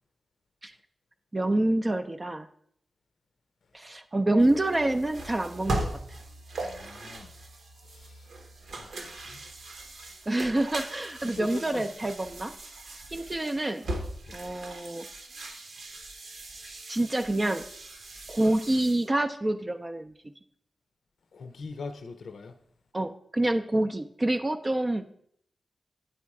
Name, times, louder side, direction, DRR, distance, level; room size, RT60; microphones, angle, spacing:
voice 1, 1.3-2.5 3.7-5.9 10.3-12.5 13.1-13.8 14.3-15.1 16.9-17.6 18.3-20.1 22.9-25.0, right 1 dB, 25° right, 0.4 m, -27 dB
sound 1, 4.4-19.1, right 2 dB, 75° right, 1.0 m, -39 dB
voice 2, 6.6-7.3 7.8-8.3 8.8-9.5 11.2-11.9 14.3-14.4 21.3-22.6, left 4 dB, 80° left, 0.6 m, -42 dB
9.2 x 4.2 x 4.7 m
wide cardioid pair, 95°, 0 cm